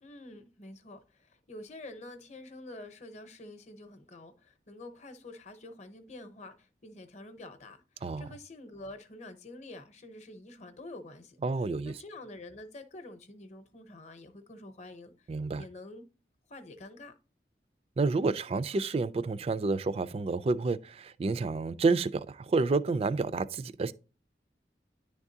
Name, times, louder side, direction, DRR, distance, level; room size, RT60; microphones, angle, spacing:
voice 1, 0.0-11.4 11.8-15.3 15.6-16.0 16.5-17.1, left 2 dB, 40° left, 0.8 m, -47 dB
voice 2, 11.4-11.9 15.3-15.6 18.0-23.9, right 3 dB, 35° right, 0.3 m, -29 dB
10.0 x 3.5 x 2.7 m
head